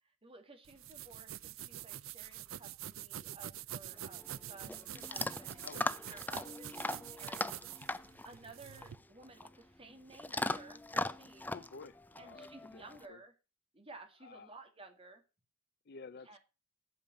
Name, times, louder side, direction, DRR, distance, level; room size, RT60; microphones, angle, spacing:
voice 1, 0.0-5.7 6.0-7.7 8.0-11.6 12.2-13.3 13.7-15.2 16.2-16.4, right 3 dB, 30° right, 2.2 m, -55 dB
sound 1, 0.7-9.0, right 11 dB, 80° right, 0.5 m, -46 dB
Chewing mastication / Dog, 3.9-13.1, left 2 dB, 10° left, 0.5 m, -40 dB
voice 2, 5.6-6.0 6.5-6.6 11.5-13.2 14.2-14.5 15.9-16.4, left 4 dB, 55° left, 0.6 m, -52 dB
8.7 x 7.4 x 7.7 m
head